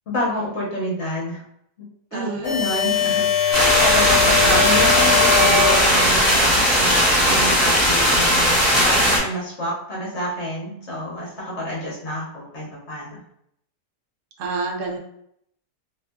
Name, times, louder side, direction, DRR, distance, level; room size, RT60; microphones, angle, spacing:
voice 1, 0.1-1.4 2.1-13.2, equal, 50° left, -6 dB, 1.1 m, -28 dB
voice 2, 2.1-2.6 14.4-15.0, right 3 dB, 65° right, 1 dB, 0.8 m, -28 dB
sound 1, 2.4-6.3, left 6 dB, 70° left, 1.1 m, -21 dB
sound 2, 3.5-9.2, equal, 30° left, 1.1 m, -17 dB
2.8 x 2.4 x 2.2 m, 0.72 s
omnidirectional pair, 1.7 m